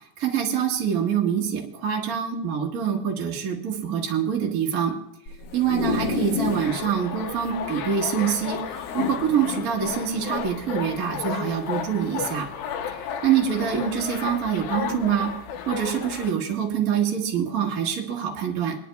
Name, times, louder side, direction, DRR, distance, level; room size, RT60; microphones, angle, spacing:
voice 1, 0.2-4.9 5.5-12.5 13.2-15.3 15.7-18.7, right 8 dB, 50° right, -1 dB, 1.0 m, -25 dB
sound 1, 5.3-6.8 7.2-7.3 7.5-7.6 8.8-9.7 10.4-10.5, left 6 dB, 65° left, 1.7 m, -29 dB
sound 2, 6.5-16.3, left 7 dB, 85° left, 2.6 m, -33 dB
22.5 x 11.0 x 2.3 m, 0.82 s
omnidirectional pair, 4.1 m